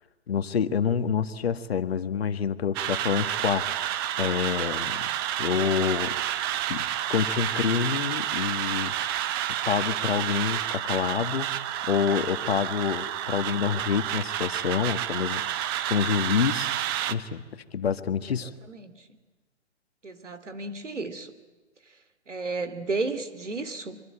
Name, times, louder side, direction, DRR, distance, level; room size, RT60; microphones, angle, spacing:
voice 1, 0.3-5.0 5.4-6.1 6.7-8.9 9.7-11.5 11.9-15.4 15.9-16.7 17.1-18.5, left 7 dB, 60° left, 10 dB, 1.7 m, -27 dB
sound 1, 2.7-17.1, right 12 dB, 20° right, 0.8 m, -30 dB
voice 2, 18.4-18.9 20.0-21.3 22.3-24.0, right 3 dB, 85° right, 10 dB, 2.9 m, -33 dB
25.5 x 24.0 x 8.9 m, 1.2 s
figure-of-eight pair, 135°, 35 cm